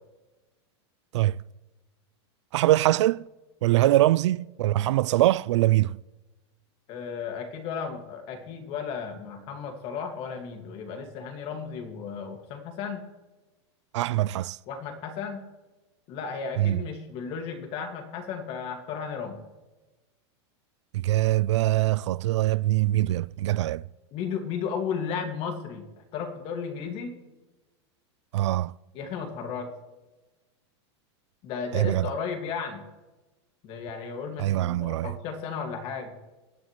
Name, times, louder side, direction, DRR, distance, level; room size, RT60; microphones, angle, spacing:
voice 1, 2.5-3.2 3.6-6.0 13.9-14.6 16.6-16.8 20.9-23.8 28.3-28.7 31.7-32.1 34.4-35.1, right 15 dB, 85° right, 0.4 m, -23 dB
voice 2, 6.9-13.0 14.7-15.4 16.1-19.4 24.1-27.2 28.9-29.7 31.4-32.9 33.6-36.2, left 6 dB, 40° left, 2.1 m, -34 dB
24.5 x 10.5 x 3.2 m
supercardioid pair, 150°, 15 cm